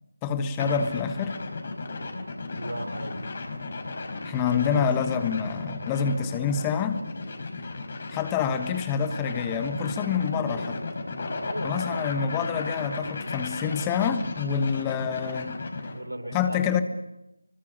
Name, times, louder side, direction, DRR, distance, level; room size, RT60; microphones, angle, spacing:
voice 1, 0.2-1.4 4.2-7.0 8.1-10.8 11.6-15.6 16.3-16.8, left 7 dB, 10° left, 10 dB, 1.2 m, -27 dB
sound 1, 0.6-16.0, left 3 dB, 40° left, 5.0 m, -34 dB
voice 2, 2.4-3.2 4.4-4.9 11.4-12.1 15.9-16.8, right 1 dB, 85° right, 8 dB, 4.8 m, -36 dB
26.0 x 24.5 x 8.7 m, 0.90 s
figure-of-eight pair, 160°, 0 cm